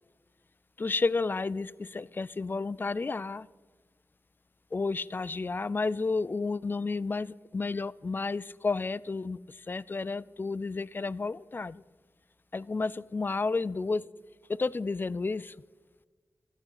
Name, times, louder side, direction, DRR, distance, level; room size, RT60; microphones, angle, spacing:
voice 1, 0.8-3.5 4.7-11.8 12.5-14.0 14.5-15.5, left 3 dB, 35° left, 21 dB, 0.3 m, -31 dB
12.0 x 8.8 x 5.8 m, 1.4 s
wide cardioid pair, 65°, 6 cm